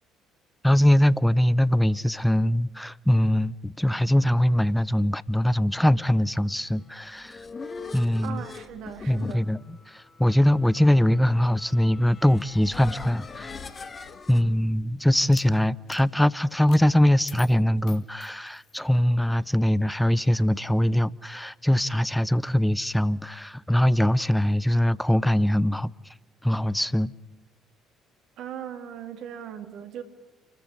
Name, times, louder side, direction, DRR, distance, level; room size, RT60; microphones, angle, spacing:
voice 1, 0.6-7.4 7.9-8.4 9.1-13.5 14.3-25.9 26.4-27.1, left 1 dB, 5° left, 0.8 m, -22 dB
sound 1, 6.9-14.4, left 4 dB, 35° left, 1.8 m, -42 dB
voice 2, 8.2-9.5 28.4-30.0, right 9 dB, 60° right, 2.5 m, -38 dB
sound 2, 12.8-14.4 15.1-15.5 15.9-16.1 16.7-16.8 17.3-18.8, left 9 dB, 60° left, 1.8 m, -47 dB
28.5 x 14.0 x 9.9 m
figure-of-eight pair, 50°, 0 cm